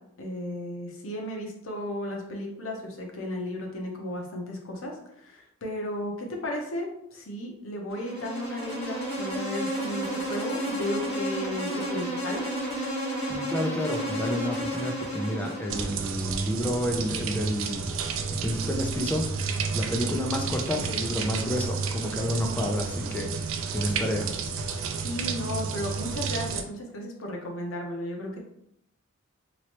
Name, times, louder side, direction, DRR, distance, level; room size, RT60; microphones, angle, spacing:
voice 1, 0.2-4.9 5.2-12.4 25.0-28.4, left 1 dB, 75° left, 1 dB, 0.8 m, -34 dB
Insect, 7.9-16.1, equal, 30° left, 1.4 m, -32 dB
voice 2, 13.3-17.9 18.3-24.3, equal, 10° left, 1 dB, 0.4 m, -30 dB
sound 1, 15.7-26.6, right 5 dB, 75° right, 0.4 m, -31 dB
3.0 x 3.0 x 3.0 m, 0.77 s
head